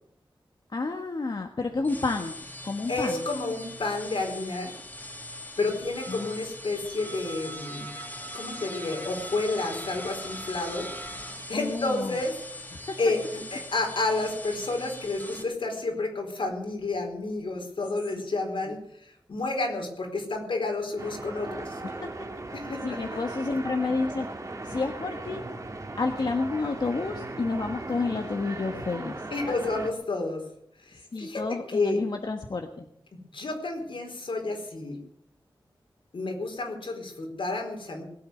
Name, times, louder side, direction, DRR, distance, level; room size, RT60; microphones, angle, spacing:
voice 1, 0.7-2.3 2.6-3.3 6.1-6.3 11.5-12.2 12.9-13.0 21.8-22.3 22.8-24.3 24.6-25.4 26.0-29.2 31.1-32.9, left 3 dB, 55° left, 4 dB, 1.4 m, -30 dB
sound 1, 1.7-15.4, left 1 dB, 20° left, 3.2 m, -41 dB
voice 2, 2.9-4.7 5.6-7.9 8.3-10.9 11.5-12.3 13.0-21.8 22.5-23.0 29.3-30.4 30.8-32.0 33.3-35.0 36.1-38.0, left 3 dB, 75° left, 2 dB, 4.5 m, -30 dB
sound 2, 21.0-29.9, right 2 dB, 35° right, 2.1 m, -38 dB
20.0 x 8.5 x 7.9 m, 0.72 s
wide cardioid pair, 100°, 9 cm